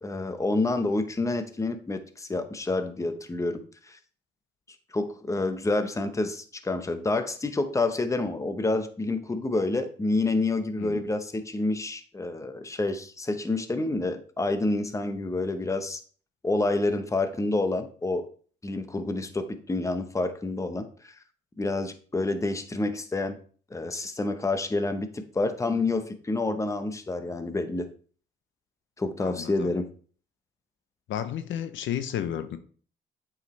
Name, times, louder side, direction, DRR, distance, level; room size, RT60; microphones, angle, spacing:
voice 1, 0.0-3.6 3.9-4.0 4.9-16.0 16.4-18.3 18.6-21.1 21.6-23.4 23.7-27.9 29.0-29.9, left 2 dB, 15° left, 9 dB, 0.8 m, -28 dB
voice 2, 29.2-29.7 31.1-32.6, left 10 dB, 75° left, 10 dB, 0.7 m, -32 dB
8.1 x 4.9 x 3.1 m, 0.43 s
cardioid pair, 90°, 20 cm